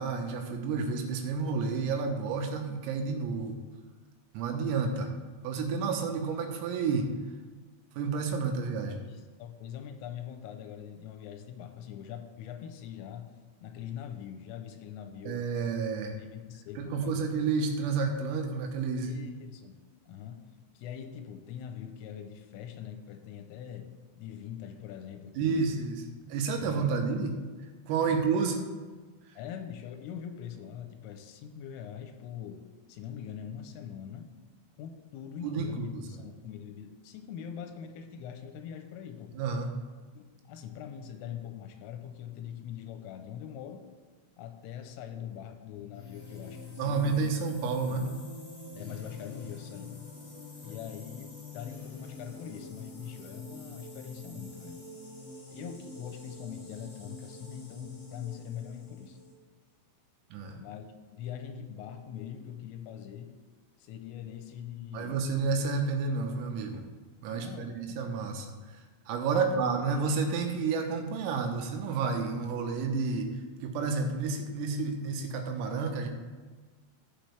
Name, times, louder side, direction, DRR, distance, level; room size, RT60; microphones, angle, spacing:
voice 1, 0.0-3.5 4.4-5.1 5.4-7.1 8.0-9.0 15.3-16.2 16.8-19.1 25.4-26.0 26.3-27.4 27.9-28.6 35.4-35.9 39.3-39.7 46.8-48.1 60.3-60.6 64.9-66.8 67.2-68.5 69.1-73.3 73.6-76.1, right 4 dB, 90° right, 4 dB, 3.7 m, -30 dB
voice 2, 8.8-13.3 13.6-15.5 16.2-17.5 19.0-19.8 20.1-20.5 20.7-23.9 24.2-25.8 26.2-26.3 26.6-27.1 28.1-28.3 29.4-34.3 34.8-39.4 40.1-43.8 44.4-47.3 47.9-48.2 48.7-50.1 50.6-54.8 55.5-59.2 60.5-63.3 63.8-65.3 67.3-68.4 69.3-69.7, left 9 dB, 85° left, 6 dB, 3.2 m, -43 dB
sound 1, 45.9-59.3, left 1 dB, 40° left, 1.4 m, -47 dB
15.0 x 6.1 x 3.4 m, 1.4 s
omnidirectional pair, 5.9 m